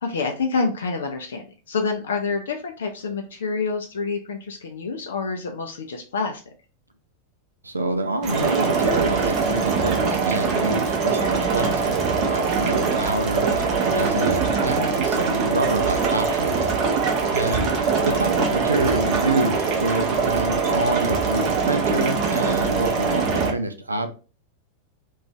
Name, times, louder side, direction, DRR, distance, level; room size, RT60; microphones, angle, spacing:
voice 1, 0.0-6.5 18.0-18.2, left 4 dB, 65° left, 3 dB, 0.4 m, -27 dB
voice 2, 7.6-16.7 17.3-17.7 18.0-24.1, right 2 dB, 80° right, 8 dB, 0.3 m, -27 dB
sound 1, 8.2-23.5, right 5 dB, 35° right, 0.6 m, -22 dB
2.5 x 2.3 x 2.9 m, 0.34 s
figure-of-eight pair, 90°, 0 cm